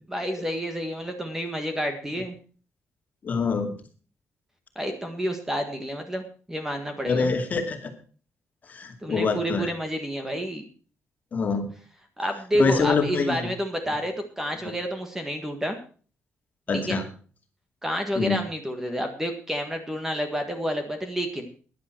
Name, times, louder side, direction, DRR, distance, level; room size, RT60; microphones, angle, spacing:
voice 1, 0.1-2.3 4.7-7.3 9.0-10.6 12.2-15.8 16.7-17.0 17.8-21.5, equal, 10° right, 6 dB, 1.6 m, -29 dB
voice 2, 3.2-3.7 7.1-7.9 8.7-9.7 11.3-11.7 12.6-13.5 16.7-17.0 18.1-18.4, left 4 dB, 35° left, 5 dB, 2.2 m, -25 dB
15.0 x 10.5 x 4.5 m, 0.40 s
wide cardioid pair, 175°, 5 cm